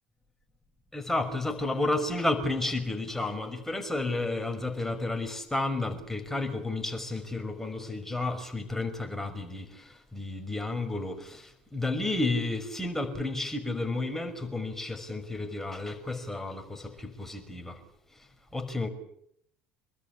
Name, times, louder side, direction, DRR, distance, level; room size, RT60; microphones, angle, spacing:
voice 1, 0.9-17.8 18.2-18.9, left 2 dB, 5° left, 5.8 m, -32 dB
28.0 x 20.0 x 8.6 m
hypercardioid pair, 65°, 5 cm